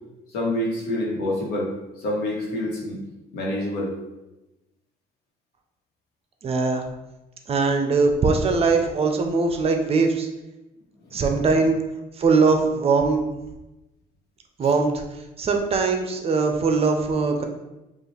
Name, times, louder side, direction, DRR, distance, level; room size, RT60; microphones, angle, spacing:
voice 1, 0.3-1.7 2.0-3.0 3.3-3.9 11.1-11.2, left 1 dB, 80° left, -2 dB, 1.2 m, -27 dB
voice 2, 6.4-6.8 7.5-10.3 11.1-11.8 12.2-13.2 14.6-15.0 15.4-17.4, right 4 dB, 35° right, 4 dB, 0.6 m, -21 dB
5.4 x 2.5 x 3.2 m, 0.99 s
cardioid pair, 110°, 17 cm